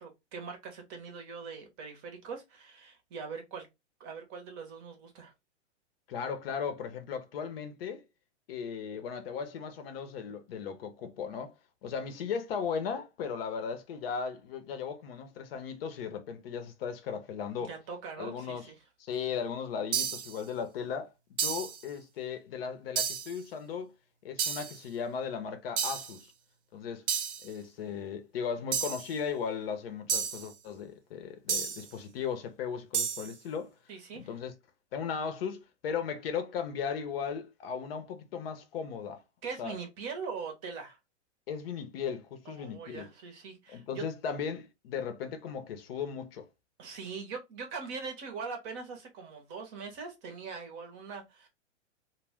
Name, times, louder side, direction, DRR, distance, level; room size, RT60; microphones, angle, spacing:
voice 1, 0.0-3.7 4.0-5.3 17.7-18.8 33.9-34.3 39.4-41.0 42.5-44.1 46.8-51.5, right 5 dB, 30° right, 0.7 m, -42 dB
voice 2, 6.1-8.0 8.5-11.5 11.8-17.7 18.2-18.7 19.0-21.1 21.4-23.9 24.2-26.3 26.7-27.0 27.4-33.7 34.1-34.5 34.9-39.2 39.6-39.7 41.5-43.1 43.7-46.4, left 6 dB, 55° left, 0.7 m, -36 dB
sound 1, 19.9-20.4 21.4-21.8 23.0-23.3 24.4-24.8 25.8-26.2 27.1-27.5 28.7-29.1 30.1-30.5 31.5-31.9 32.9-33.3, right 7 dB, 70° right, 0.8 m, -31 dB
2.2 x 2.1 x 3.4 m
hypercardioid pair, 135°, 36 cm